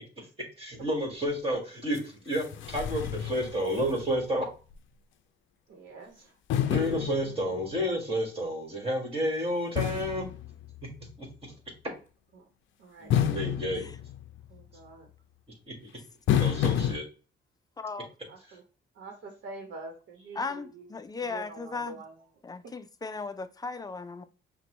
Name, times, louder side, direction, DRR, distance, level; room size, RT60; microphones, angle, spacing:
voice 1, 0.6-4.5 6.7-10.3 11.2-11.3 13.0-13.9 15.7-15.8 16.4-17.0, equal, 30° right, 1.8 m, -30 dB
sound 1, 2.0-2.1 2.3-4.4 4.7-4.8 6.5-7.8 9.8-11.2 13.1-14.6 16.3-17.0, left 10 dB, 75° left, 0.5 m, -30 dB
voice 2, 5.7-6.3 12.3-12.4 12.8-13.2 14.5-15.1 18.3-18.6 18.9-21.0 21.2-22.3 22.6-22.7, right 3 dB, 70° right, 1.0 m, -46 dB
voice 3, 17.8-18.1 20.4-22.0 22.4-24.2, left 4 dB, 20° left, 0.4 m, -36 dB
5.8 x 2.3 x 3.0 m
cardioid pair, 90°, 20 cm